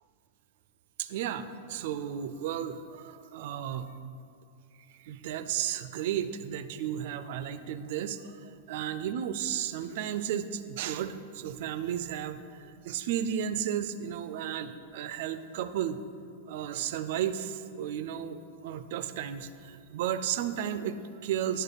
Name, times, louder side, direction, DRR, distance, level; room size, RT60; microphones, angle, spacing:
voice 1, 1.0-3.9 5.0-16.0 16.5-21.6, right 9 dB, 55° right, 11 dB, 0.4 m, -34 dB
10.5 x 3.9 x 3.9 m, 2.5 s
figure-of-eight pair, 100°, 0 cm